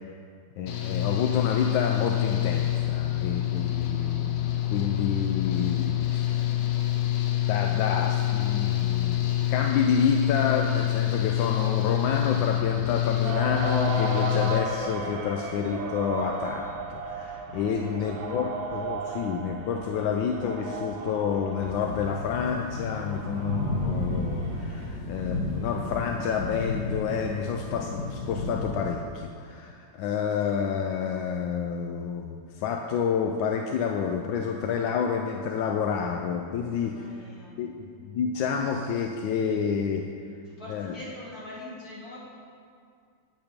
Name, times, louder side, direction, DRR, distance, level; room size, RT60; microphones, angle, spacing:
voice 1, 0.6-6.4 7.5-36.9 37.6-40.0 40.7-40.9, left 7 dB, 85° left, 3 dB, 1.3 m, -29 dB
Engine / Mechanical fan, 0.7-14.6, left 13 dB, 65° left, 1.1 m, -26 dB
sound 1, 13.2-24.9, right 4 dB, 90° right, 1.7 m, -35 dB
voice 2, 17.5-18.4 36.8-37.6 40.4-42.2, left 1 dB, 50° left, -8 dB, 3.2 m, -43 dB
sound 2, 21.6-28.7, left 2 dB, 55° right, 2.8 m, -32 dB
8.8 x 7.9 x 5.2 m, 2.2 s
omnidirectional pair, 2.1 m